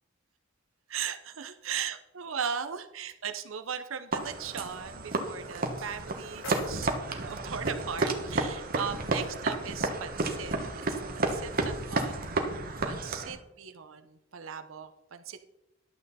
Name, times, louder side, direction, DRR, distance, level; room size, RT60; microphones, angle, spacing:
voice 1, 0.9-12.3 12.8-15.4, right 7 dB, 75° right, 8 dB, 0.8 m, -38 dB
sound 1, 4.1-13.4, right 2 dB, 45° right, 1.4 m, -32 dB
sound 2, 5.7-7.7, left 2 dB, 75° left, 3.6 m, -47 dB
11.5 x 7.6 x 4.1 m, 0.88 s
head